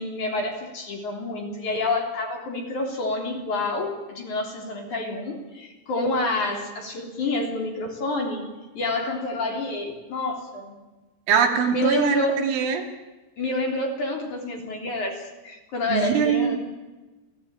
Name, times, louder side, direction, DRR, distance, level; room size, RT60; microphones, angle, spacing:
voice 1, 0.0-8.4 8.7-10.8 11.7-12.4 13.4-16.6, left 2 dB, 45° left, 2 dB, 4.4 m, -28 dB
voice 2, 11.3-12.8 15.9-16.6, right 7 dB, 80° right, 4 dB, 5.0 m, -22 dB
28.5 x 17.5 x 8.9 m, 1.2 s
omnidirectional pair, 5.4 m